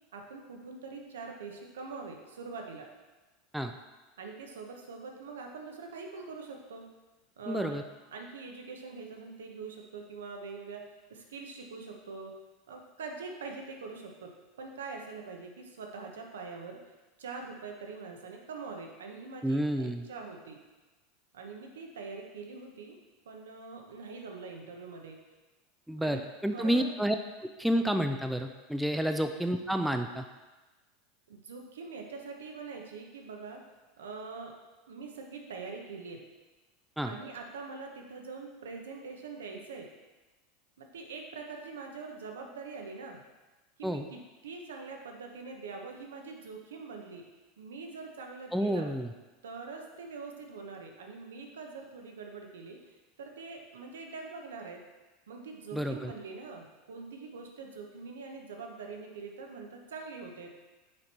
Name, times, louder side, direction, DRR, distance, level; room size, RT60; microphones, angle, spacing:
voice 1, 0.1-2.9 4.2-6.9 7.4-7.8 8.1-10.8 11.1-12.3 12.7-14.3 14.6-16.8 17.2-20.6 21.3-23.0 23.2-25.2 26.0-26.2 26.5-26.9 28.9-29.1 31.3-33.6 34.0-34.5 34.9-36.2 37.0-39.9 40.8-43.2 43.8-47.2 47.6-48.9 49.4-54.8 55.3-60.5, right 4 dB, 85° right, 2 dB, 1.0 m, -43 dB
voice 2, 7.5-7.8 19.4-20.0 25.9-27.2 27.6-30.2 37.0-37.1 43.8-44.0 48.5-49.1 55.7-56.1, equal, 5° right, 6 dB, 0.4 m, -30 dB
6.5 x 4.4 x 4.2 m, 1.2 s
hypercardioid pair, 95°, 0 cm